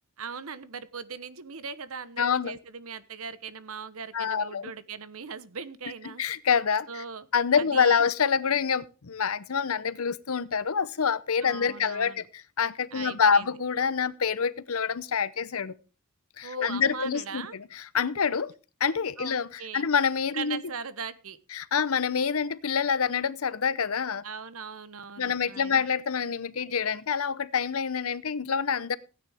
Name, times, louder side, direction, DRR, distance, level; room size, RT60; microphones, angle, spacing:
voice 1, 0.2-6.2 6.9-7.3 7.6-8.1 11.4-12.3 12.9-13.5 16.4-17.6 19.2-19.9 20.3-21.4 24.2-25.8, right 6 dB, 75° right, 1.1 m, -39 dB
voice 2, 2.2-2.6 4.1-4.7 6.2-7.0 7.3-15.8 16.4-18.5 18.8-20.6 21.5-24.2 25.2-29.0, left 6 dB, 80° left, 0.8 m, -26 dB
16.0 x 9.6 x 3.5 m
head